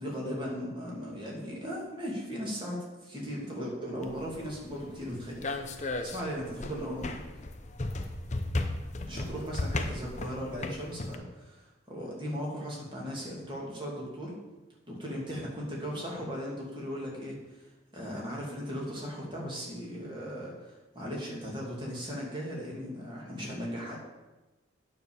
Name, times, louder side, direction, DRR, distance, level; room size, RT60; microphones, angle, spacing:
voice 1, 0.0-7.2 9.1-14.4 14.9-24.0, equal, 25° right, -3 dB, 2.6 m, -37 dB
sound 1, 4.0-11.2, left 2 dB, 35° left, 0.7 m, -36 dB
9.2 x 5.3 x 7.0 m, 1.1 s
head